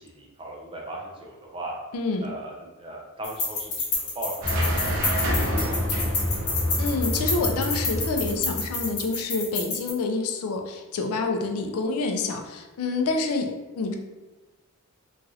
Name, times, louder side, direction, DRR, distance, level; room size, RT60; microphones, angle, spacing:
voice 1, 0.0-1.7 2.2-5.8, right 1 dB, 25° right, -2 dB, 0.5 m, -38 dB
voice 2, 1.9-2.3 5.9-6.0 6.8-13.5 13.8-14.0, left 3 dB, 70° left, 4 dB, 0.4 m, -27 dB
sound 1, 3.2-9.9, left 3 dB, 35° left, 0.8 m, -29 dB
sound 2, 4.4-9.1, equal, 80° right, 0.8 m, -27 dB
3.0 x 2.4 x 2.7 m, 1.2 s
head